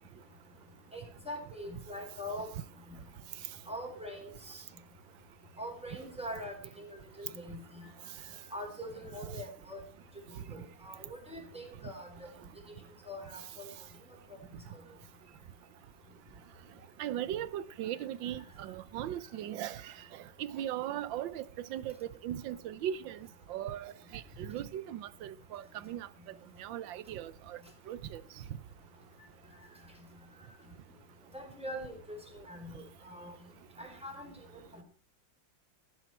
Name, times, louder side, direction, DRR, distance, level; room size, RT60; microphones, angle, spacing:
voice 1, 0.9-2.5 3.7-4.6 5.6-7.8 8.5-9.8 10.3-12.1 13.1-13.7 31.3-32.2 32.5-33.3 33.8-34.3, equal, 5° right, 4.4 m, -43 dB
voice 2, 17.0-19.9 20.4-23.2 23.5-26.1 26.6-27.6 27.9-28.2, right 11 dB, 80° right, 1.5 m, -38 dB
14.0 x 10.5 x 4.5 m
omnidirectional pair, 2.1 m